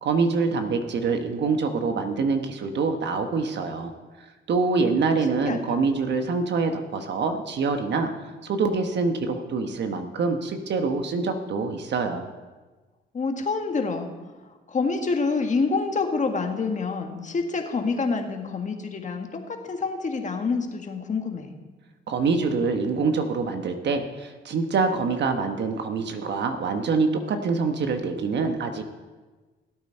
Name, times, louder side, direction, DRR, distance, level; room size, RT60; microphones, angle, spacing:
voice 1, 0.0-3.9 4.5-8.1 8.4-12.3 22.1-28.8, right 4 dB, 60° right, 6 dB, 1.2 m, -25 dB
voice 2, 5.3-5.8 13.1-14.1 14.7-21.5, left 4 dB, 40° left, 4 dB, 1.6 m, -27 dB
16.5 x 8.6 x 4.4 m, 1.3 s
cardioid pair, 90°, 20 cm